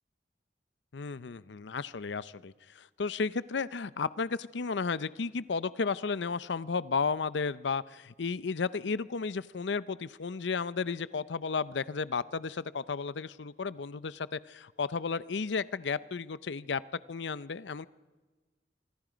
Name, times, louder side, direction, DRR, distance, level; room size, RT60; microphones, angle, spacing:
voice 1, 0.9-16.8 17.1-17.9, left 5 dB, 75° left, 17 dB, 0.6 m, -33 dB
25.5 x 25.0 x 5.1 m, 1.3 s
head